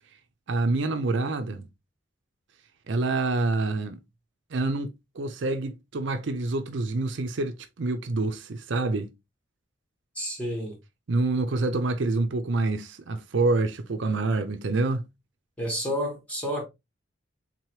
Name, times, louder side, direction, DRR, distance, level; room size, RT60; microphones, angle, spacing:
voice 1, 0.5-1.7 2.9-4.0 4.5-9.1 11.1-15.1, right 2 dB, 70° right, 0.5 m, -27 dB
voice 2, 10.1-10.7 15.6-16.6, equal, 5° left, 1.5 m, -30 dB
4.0 x 3.0 x 3.0 m
head